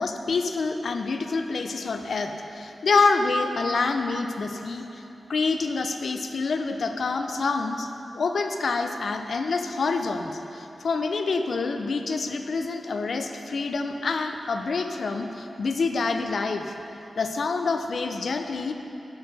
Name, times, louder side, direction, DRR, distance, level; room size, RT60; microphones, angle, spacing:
voice 1, 0.0-4.9 5.3-7.9 8.1-16.7 17.2-18.7, left 4 dB, 70° left, 6 dB, 0.4 m, -27 dB
6.7 x 6.6 x 4.0 m, 2.9 s
cardioid pair, 65°, 0 cm